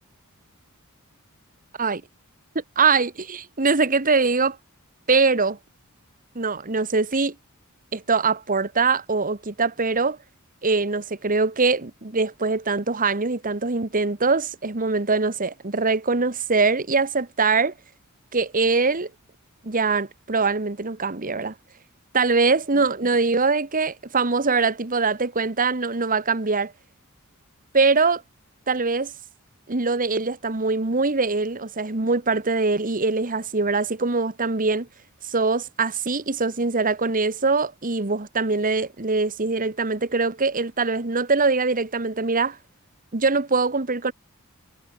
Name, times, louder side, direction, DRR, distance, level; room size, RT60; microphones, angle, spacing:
voice 1, 2.8-4.6 5.1-5.6 6.3-7.3 7.9-10.2 10.6-17.7 18.3-19.1 19.6-21.5 22.1-26.7 27.7-28.2 28.7-29.1 29.7-34.9 35.2-42.6 43.1-44.1, right 4 dB, 40° right, 1.5 m, -23 dB
head